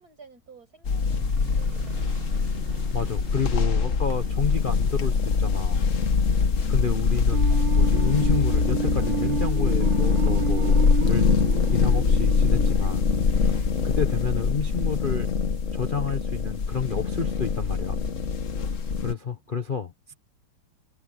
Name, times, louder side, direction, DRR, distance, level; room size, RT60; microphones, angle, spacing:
voice 1, 0.0-3.0 6.1-6.6 18.5-19.1, right 3 dB, 40° right, 6.8 m, -54 dB
sound 1, 0.8-19.1, left 5 dB, 45° left, 1.3 m, -23 dB
sound 2, 1.1-18.1 18.7-18.8 19.3-19.6, right 6 dB, 25° right, 2.0 m, -46 dB
voice 2, 2.9-5.9 6.7-10.8 11.0-11.3 11.7-15.3 15.7-18.0 19.0-20.1, left 6 dB, 65° left, 0.5 m, -30 dB
sound 3, 7.3-14.2, right 12 dB, 65° right, 1.5 m, -32 dB
omnidirectional pair, 2.4 m